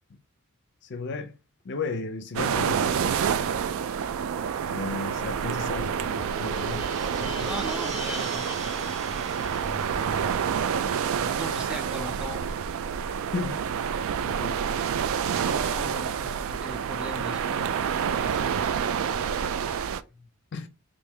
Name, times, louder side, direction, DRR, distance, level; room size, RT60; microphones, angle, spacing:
voice 1, 0.8-1.4 1.6-3.6 4.7-6.9 7.1-7.5 10.8-11.0 13.1-13.6 14.2-14.6 20.5-20.7, left 3 dB, 55° left, 0.5 m, -35 dB
sound 1, 2.3-20.0, right 7 dB, 65° right, 0.3 m, -28 dB
sound 2, 5.1-11.7, equal, 30° right, 0.9 m, -40 dB
voice 2, 7.4-10.8 11.2-12.5 15.3-17.7 19.3-20.3, equal, 5° right, 0.6 m, -40 dB
3.3 x 2.6 x 3.6 m
head